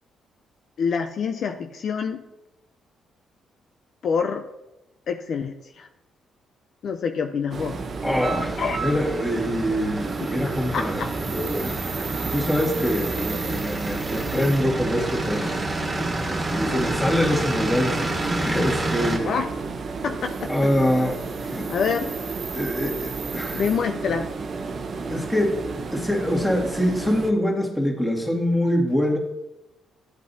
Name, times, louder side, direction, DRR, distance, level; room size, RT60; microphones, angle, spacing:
voice 1, 0.8-2.2 4.0-4.5 5.1-5.9 6.8-7.8 8.6-8.8 10.7-11.1 19.3-19.5 20.0-20.7 21.7-22.2 23.5-24.3, left 6 dB, 60° left, 5 dB, 0.5 m, -26 dB
sound 1, 7.5-27.3, right 4 dB, 50° right, 0.9 m, -32 dB
voice 2, 8.0-11.0 11.3-11.8 12.3-15.6 16.2-19.3 20.5-21.7 22.5-23.6 25.1-25.6 25.9-29.2, equal, 10° left, -1 dB, 2.1 m, -24 dB
sound 2, 8.2-19.2, right 2 dB, 25° right, 1.6 m, -30 dB
12.5 x 8.2 x 2.7 m, 0.93 s
cardioid pair, 90°, 0 cm